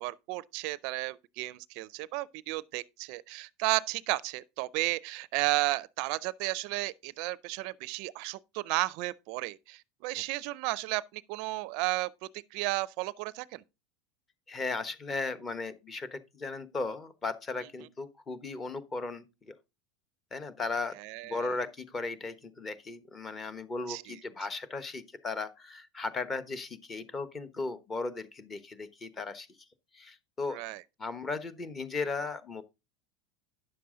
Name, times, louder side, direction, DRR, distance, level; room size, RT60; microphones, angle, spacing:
voice 1, 0.0-13.6 21.0-21.5 23.9-24.2 30.5-30.8, right 21 dB, 55° right, 0.4 m, -33 dB
voice 2, 14.5-19.5 20.3-21.0 21.2-29.5 29.9-30.6 31.0-32.6, left 3 dB, 20° left, 1.0 m, -36 dB
9.8 x 6.9 x 3.8 m
supercardioid pair, 135°, 0 cm